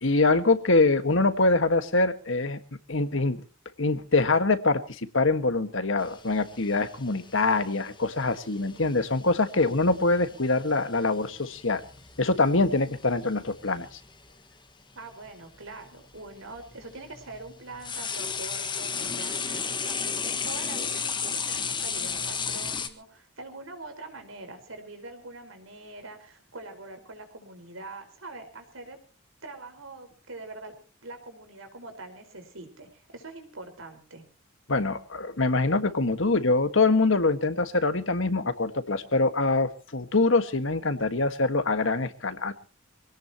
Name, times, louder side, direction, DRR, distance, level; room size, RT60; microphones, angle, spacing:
voice 1, 0.0-2.6 2.9-3.4 3.8-11.8 12.2-13.9 34.7-42.5, left 3 dB, 70° left, 10 dB, 1.6 m, -24 dB
sound 1, 6.0-14.2 15.3-15.4 16.2-22.9, left 6 dB, 25° left, 1.5 m, -35 dB
voice 2, 14.9-29.0 29.4-30.7 31.0-34.2, right 2 dB, 85° right, 6 dB, 4.7 m, -43 dB
25.0 x 18.0 x 2.9 m, 0.37 s
head